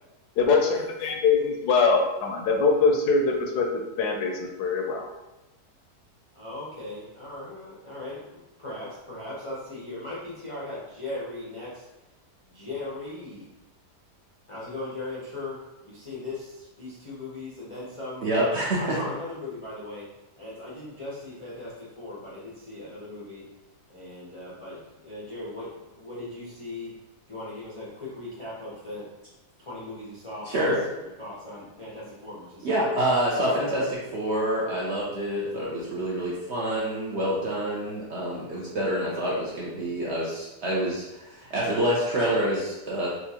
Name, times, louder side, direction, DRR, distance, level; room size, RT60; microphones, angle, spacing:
voice 1, 0.4-5.1, left 4 dB, 75° left, 2 dB, 1.1 m, -23 dB
voice 2, 6.3-11.8 12.5-13.5 14.5-20.1 20.4-23.4 23.9-26.9 27.3-29.1 29.6-30.7 31.0-33.0, left 2 dB, 45° left, -8 dB, 0.4 m, -38 dB
voice 3, 18.2-19.0 30.4-30.8 32.6-43.1, right 1 dB, 60° right, -6 dB, 0.7 m, -27 dB
4.3 x 2.4 x 2.8 m, 1.0 s
omnidirectional pair, 1.8 m